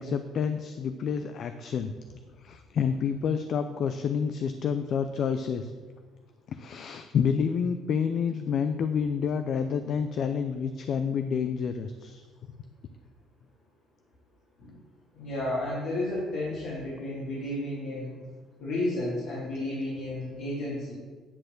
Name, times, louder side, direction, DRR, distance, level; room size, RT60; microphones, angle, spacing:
voice 1, 0.0-1.9 2.4-5.7 6.5-12.2, left 6 dB, 50° left, 9 dB, 0.4 m, -29 dB
voice 2, 15.1-18.1 18.6-20.9, left 1 dB, 75° left, -8 dB, 2.7 m, -32 dB
10.0 x 4.2 x 6.6 m, 1.4 s
cardioid pair, 130°, 0 cm